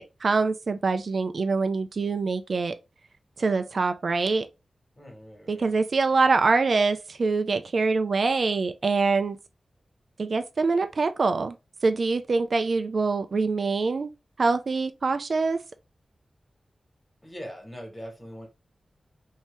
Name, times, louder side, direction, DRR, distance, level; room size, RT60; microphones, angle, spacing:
voice 1, 0.0-2.8 3.4-4.5 5.5-9.4 10.2-11.6 11.8-14.1 14.4-15.6, right 4 dB, 60° right, 0.4 m, -24 dB
voice 2, 4.9-5.7 17.2-18.5, equal, 20° left, 1.6 m, -41 dB
3.0 x 2.7 x 3.2 m
wide cardioid pair, 95°, 0 cm